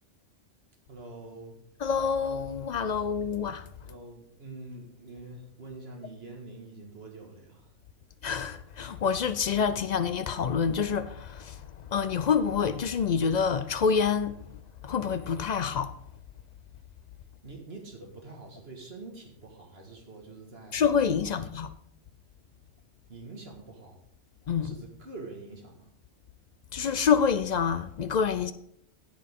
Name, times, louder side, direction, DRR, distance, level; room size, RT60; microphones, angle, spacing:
voice 1, 0.9-1.6 3.8-7.7 17.4-20.8 21.2-21.3 23.1-24.0 24.6-25.9, right 2 dB, 60° right, 1.9 m, -45 dB
voice 2, 1.8-3.7 8.2-14.4 14.8-15.9 20.7-21.7 24.5-24.7 26.7-28.5, left 6 dB, 60° left, 0.4 m, -27 dB
10.5 x 8.6 x 3.6 m
omnidirectional pair, 1.2 m